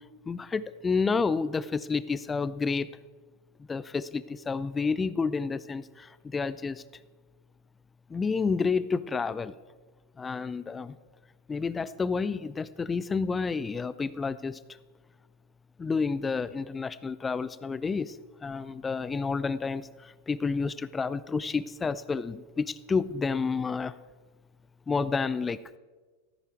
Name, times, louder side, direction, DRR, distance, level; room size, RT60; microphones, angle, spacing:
voice 1, 0.3-2.9 3.7-6.8 8.1-9.5 10.2-11.0 11.5-14.6 15.8-18.2 18.4-23.9 24.9-25.6, left 4 dB, 15° left, 17 dB, 0.5 m, -30 dB
14.5 x 13.0 x 4.6 m, 1.4 s
figure-of-eight pair, 90°, 0 cm